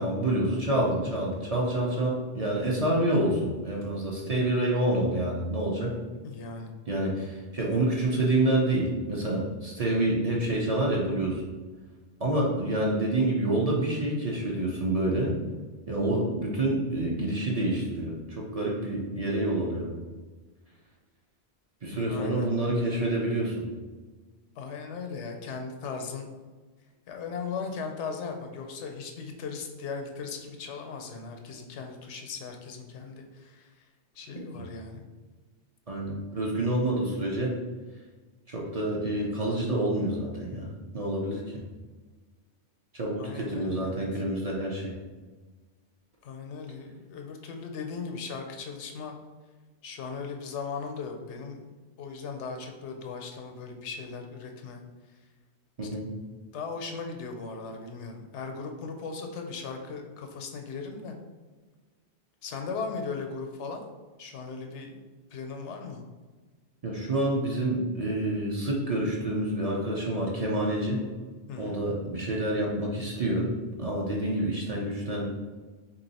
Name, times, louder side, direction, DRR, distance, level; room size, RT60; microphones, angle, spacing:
voice 1, 0.0-5.9 6.9-11.4 12.2-15.4 15.9-19.9 21.8-23.7 35.9-37.6 38.5-40.7 40.9-41.4 42.9-44.9 55.8-56.1 66.8-71.0 71.6-73.5 73.8-75.4, right 1 dB, 40° right, -3 dB, 0.6 m, -27 dB
voice 2, 6.2-6.7 21.9-22.5 24.6-26.3 27.1-33.8 34.1-35.1 43.2-44.0 46.2-49.1 49.8-51.6 52.0-54.8 55.8-56.0 56.5-61.1 62.4-63.8 64.2-64.9 65.3-66.0 71.5-71.8, left 5 dB, 85° left, 4 dB, 0.9 m, -38 dB
3.5 x 2.8 x 4.0 m, 1.3 s
omnidirectional pair, 1.1 m